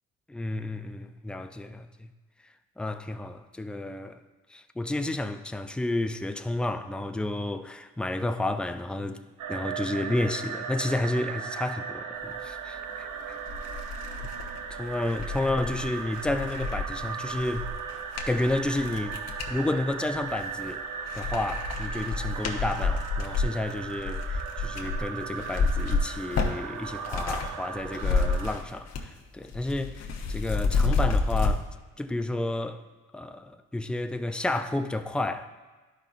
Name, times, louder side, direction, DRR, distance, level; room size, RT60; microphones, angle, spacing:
voice 1, 0.3-2.1 2.8-4.2 4.5-9.2 9.5-13.1 14.7-17.7 18.3-19.2 19.5-20.8 21.1-30.0 30.3-31.7 32.0-32.8 33.1-35.5, left 2 dB, 5° left, 0.3 m, -31 dB
sound 1, 9.4-28.6, right 6 dB, 90° right, 0.6 m, -37 dB
sound 2, 12.9-13.0 13.4-19.6 20.1-20.8 21.1-27.5 27.8-29.2 29.4-31.5, left 4 dB, 55° left, 0.9 m, -30 dB
11.5 x 5.2 x 2.5 m
cardioid pair, 90°, 30 cm